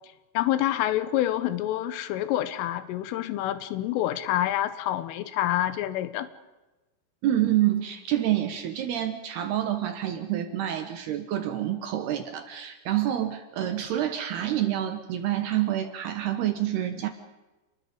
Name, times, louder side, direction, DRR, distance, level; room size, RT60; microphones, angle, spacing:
voice 1, 0.4-6.3, left 13 dB, 90° left, 3.6 m, -27 dB
voice 2, 7.2-17.1, right 12 dB, 65° right, 2.9 m, -27 dB
29.0 x 20.5 x 5.3 m
omnidirectional pair, 5.6 m